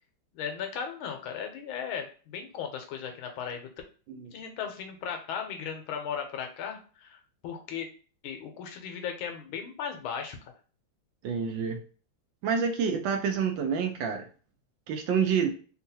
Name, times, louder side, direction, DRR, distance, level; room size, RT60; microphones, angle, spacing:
voice 1, 0.3-3.7 4.3-7.9 8.2-10.5, left 7 dB, 85° left, 4 dB, 1.5 m, -36 dB
voice 2, 11.2-11.8 12.4-14.3 14.9-15.5, right 6 dB, 75° right, 4 dB, 1.3 m, -28 dB
3.6 x 2.3 x 2.7 m, 0.38 s
omnidirectional pair, 2.2 m